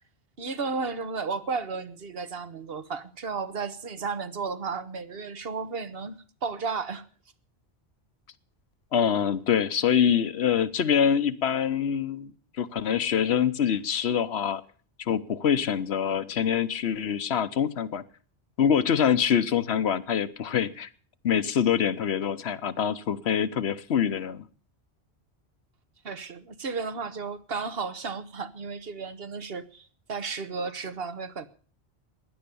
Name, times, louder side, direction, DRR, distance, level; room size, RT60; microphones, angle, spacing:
voice 1, 0.4-7.1 26.0-31.5, right 4 dB, 65° right, 1.3 m, -33 dB
voice 2, 8.9-12.3 12.6-14.6 15.0-18.0 18.6-20.9 21.2-24.4, left 8 dB, 75° left, 1.2 m, -25 dB
16.0 x 10.5 x 6.9 m
omnidirectional pair, 1.1 m